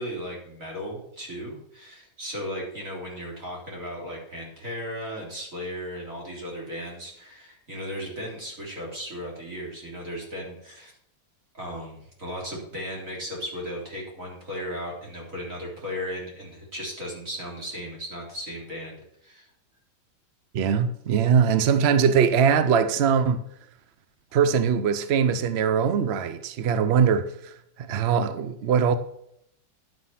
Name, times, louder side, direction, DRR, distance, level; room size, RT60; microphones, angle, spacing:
voice 1, 0.0-10.9 11.5-19.5, equal, 45° right, 4.0 m, -36 dB
voice 2, 20.5-23.4 24.3-27.5 27.8-29.0, right 7 dB, 70° right, 0.6 m, -21 dB
11.0 x 7.8 x 5.8 m
omnidirectional pair, 2.0 m